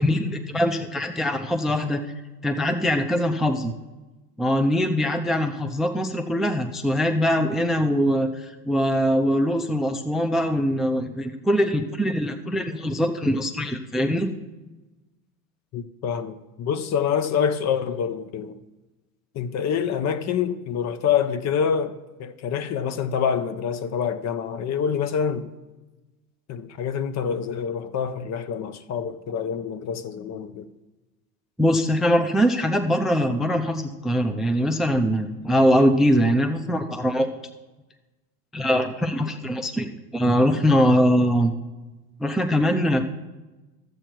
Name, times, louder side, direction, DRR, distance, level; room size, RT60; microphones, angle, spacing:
voice 1, 0.0-2.0 2.4-3.7 4.4-14.3 31.6-37.3 38.5-41.5 42.2-43.0, equal, ahead, 0.4 m, -22 dB
voice 2, 15.7-18.6 19.3-25.5 26.5-30.7, left 7 dB, 40° left, 0.7 m, -26 dB
12.0 x 7.9 x 4.5 m
hypercardioid pair, 95°, 43 cm